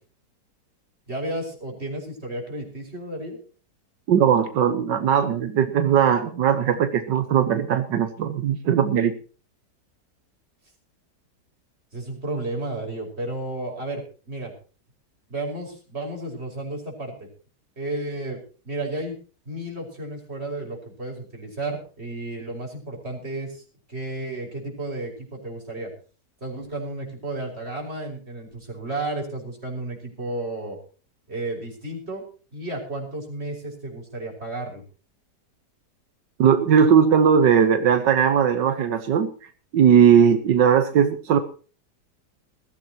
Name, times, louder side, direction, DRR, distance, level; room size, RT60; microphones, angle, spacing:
voice 1, 1.1-3.4 11.9-14.5 15.3-17.3 17.8-18.4 18.6-19.2 19.5-23.6 23.9-25.9 26.4-30.8 31.3-32.2 32.5-34.8, right 2 dB, 35° right, 0 dB, 5.9 m, -32 dB
voice 2, 4.1-9.2 36.4-39.3 39.7-41.4, right 8 dB, 85° right, 8 dB, 1.8 m, -18 dB
20.5 x 15.5 x 3.0 m, 0.38 s
omnidirectional pair, 1.9 m